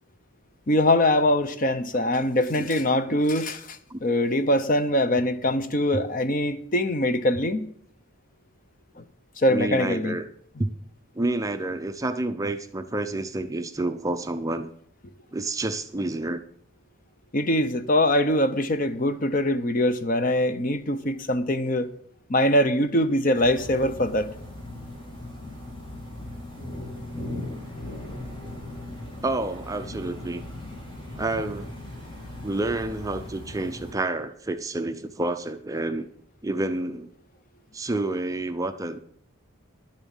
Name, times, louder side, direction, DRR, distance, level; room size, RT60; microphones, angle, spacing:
voice 1, 0.7-7.7 9.0-9.1 9.4-10.2 17.3-21.9 22.3-24.3, left 1 dB, 40° left, 0.7 m, -23 dB
voice 2, 9.5-10.3 10.6-10.7 11.1-14.7 15.3-16.4 29.2-30.4 31.2-31.7 32.4-36.1 36.4-37.1 37.7-39.0, right 2 dB, 15° right, 0.5 m, -29 dB
sound 1, 23.3-33.9, left 1 dB, 25° left, 2.7 m, -38 dB
11.0 x 7.2 x 7.2 m
head